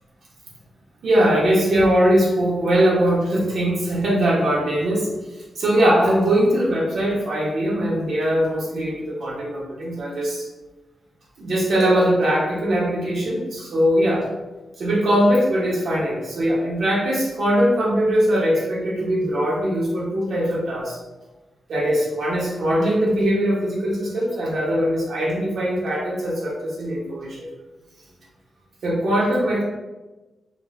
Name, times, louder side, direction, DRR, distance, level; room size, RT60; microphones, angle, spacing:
voice 1, 1.0-5.1 5.6-10.5 11.4-14.3 14.8-21.0 21.7-27.5 28.8-29.6, equal, 70° right, -5 dB, 0.7 m, -21 dB
2.3 x 2.0 x 3.2 m, 1.1 s
cardioid pair, 70°, 0 cm